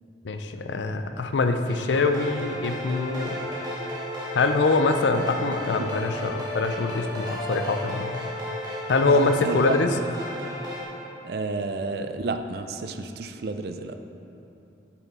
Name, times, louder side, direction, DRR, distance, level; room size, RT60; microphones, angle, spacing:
voice 1, 0.2-3.4 4.3-8.1 8.9-9.9, left 3 dB, 85° left, 7 dB, 0.5 m, -24 dB
sound 1, 1.7-10.8, left 1 dB, 20° right, 1.2 m, -34 dB
voice 2, 9.1-9.8 11.2-14.0, right 3 dB, 60° right, 8 dB, 0.4 m, -31 dB
8.4 x 6.0 x 4.1 m, 2.8 s
head